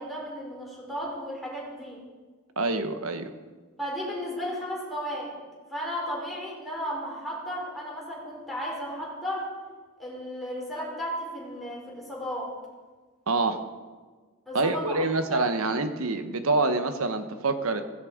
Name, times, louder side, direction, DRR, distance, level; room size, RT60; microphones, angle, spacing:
voice 1, 0.0-2.0 3.8-5.3 5.7-9.5 10.0-12.5 14.5-15.4, equal, ahead, -5 dB, 5.7 m, -34 dB
voice 2, 2.6-3.3 13.3-13.6 14.5-17.8, right 3 dB, 80° right, 9 dB, 1.3 m, -26 dB
16.5 x 15.5 x 5.2 m, 1.4 s
head